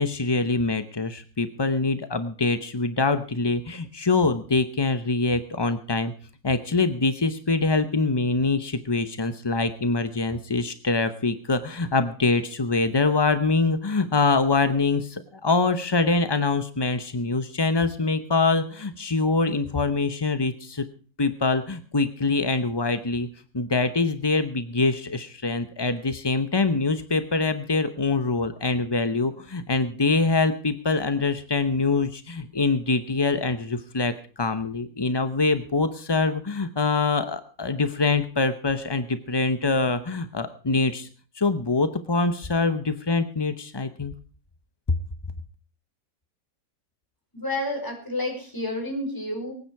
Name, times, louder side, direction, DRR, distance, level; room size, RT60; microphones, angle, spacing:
voice 1, 0.0-6.1 6.4-20.8 21.2-23.3 23.5-41.1 41.3-44.1, left 3 dB, 35° left, 10 dB, 0.4 m, -24 dB
voice 2, 47.3-49.5, left 1 dB, 10° left, 1 dB, 5.2 m, -30 dB
23.5 x 9.3 x 4.7 m, 0.40 s
omnidirectional pair, 1.9 m